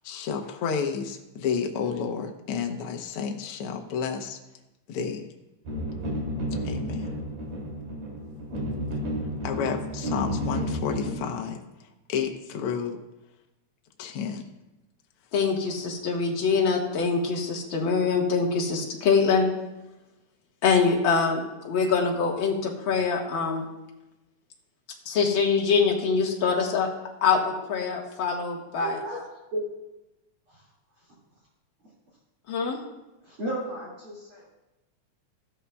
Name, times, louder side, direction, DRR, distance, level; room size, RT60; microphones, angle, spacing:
voice 1, 0.0-4.4 4.9-5.2 6.6-7.2 9.4-11.6 12.1-13.0 14.0-14.4, left 6 dB, 65° left, 3 dB, 1.4 m, -30 dB
sound 1, 5.6-11.2, equal, 75° right, 4.3 m, -31 dB
voice 2, 15.3-19.5 20.6-23.7 25.1-26.9 27.2-29.0 32.5-32.8, left 5 dB, 50° left, -1 dB, 1.8 m, -24 dB
voice 3, 28.8-29.2 29.5-29.6 30.5-30.6 33.2-34.5, right 1 dB, 45° right, -6 dB, 2.9 m, -33 dB
14.5 x 12.5 x 2.3 m, 0.99 s
omnidirectional pair, 3.7 m